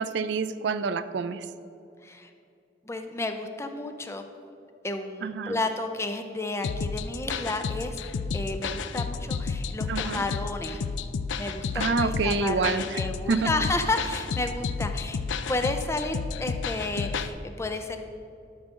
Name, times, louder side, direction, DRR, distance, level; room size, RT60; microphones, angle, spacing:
voice 1, 0.0-1.5 5.2-5.6 9.9-10.2 11.7-13.0 13.3-13.5, right 4 dB, 65° right, 12 dB, 0.4 m, -27 dB
voice 2, 2.9-4.2 4.8-8.0 8.3-10.8 11.4-15.2 15.5-18.0, left 2 dB, 15° left, 6 dB, 0.5 m, -31 dB
sound 1, 6.6-17.3, left 5 dB, 85° left, 0.4 m, -31 dB
12.0 x 6.2 x 3.7 m, 2.6 s
head